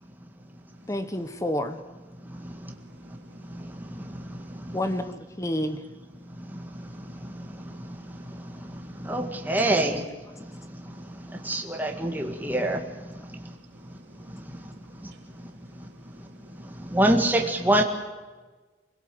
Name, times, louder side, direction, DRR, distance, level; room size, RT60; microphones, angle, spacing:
voice 1, 0.9-1.8 4.7-5.8, left 1 dB, 15° left, 10 dB, 1.0 m, -29 dB
voice 2, 2.4-4.8 6.4-9.3 10.4-12.4 13.2-17.0, right 1 dB, 70° right, 3 dB, 3.3 m, -54 dB
voice 3, 9.0-10.0 11.5-12.8 16.9-17.8, right 1 dB, 10° right, 3 dB, 1.8 m, -23 dB
25.0 x 17.0 x 7.8 m, 1.3 s
head